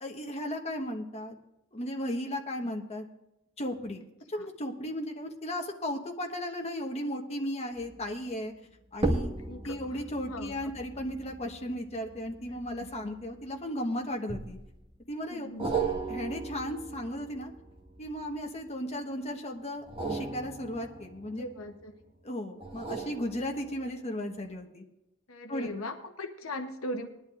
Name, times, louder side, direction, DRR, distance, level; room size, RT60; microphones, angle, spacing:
voice 1, 0.0-1.4 1.7-3.0 3.6-8.5 8.9-9.3 9.6-14.6 15.1-15.5 16.1-17.5 18.0-19.8 20.1-21.5 22.2-24.8 25.5-25.7, equal, 30° left, 2 dB, 1.3 m, -35 dB
sound 1, 7.7-8.1 8.9-13.6 14.3-14.9 15.6-18.6 19.8-21.9 22.6-24.0 24.5-24.6, right 3 dB, 25° right, 1.6 m, -36 dB
voice 2, 9.4-10.0 10.3-10.7 12.5-13.1 15.2-15.7 21.4-21.9 25.3-27.1, left 1 dB, 75° left, 6 dB, 1.0 m, -40 dB
20.5 x 11.5 x 2.5 m, 0.93 s
head